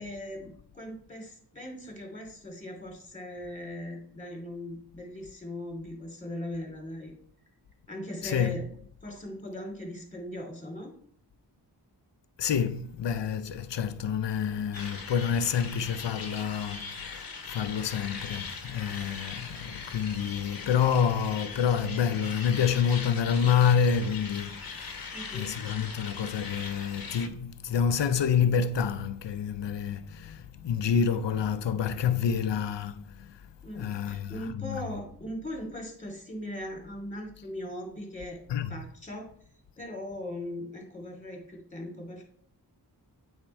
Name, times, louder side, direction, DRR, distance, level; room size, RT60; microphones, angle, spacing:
voice 1, 0.0-7.1 7.9-8.6 9.0-10.9 25.1-25.5 33.6-38.4 38.7-39.3 39.8-42.2, left 1 dB, 15° left, 2.5 m, -39 dB
voice 2, 8.2-8.6 12.4-25.1 25.3-33.3 33.7-34.3 34.6-34.8 38.5-38.7, left 7 dB, 85° left, 0.6 m, -28 dB
sound 1, 14.7-27.3, left 5 dB, 55° left, 1.0 m, -41 dB
8.6 x 3.6 x 4.3 m
wide cardioid pair, 65°, 42 cm